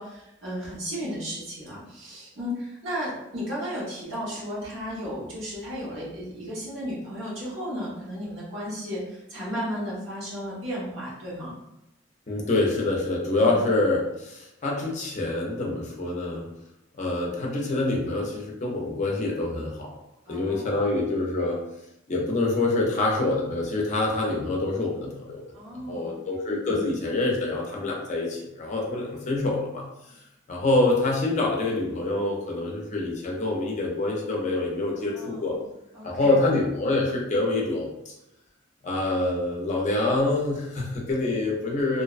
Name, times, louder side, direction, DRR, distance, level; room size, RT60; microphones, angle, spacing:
voice 1, 0.0-11.5 13.4-13.6 20.3-20.7 25.5-26.2 34.9-35.6 35.9-36.3 41.0-41.1, equal, 75° right, -7 dB, 1.1 m, -34 dB
voice 2, 12.3-16.5 16.9-19.9 20.3-21.6 22.1-25.4 25.7-30.1 30.5-35.6 36.0-38.1 38.8-42.0, left 2 dB, 35° left, -1 dB, 0.5 m, -26 dB
2.5 x 2.1 x 2.4 m, 0.87 s
head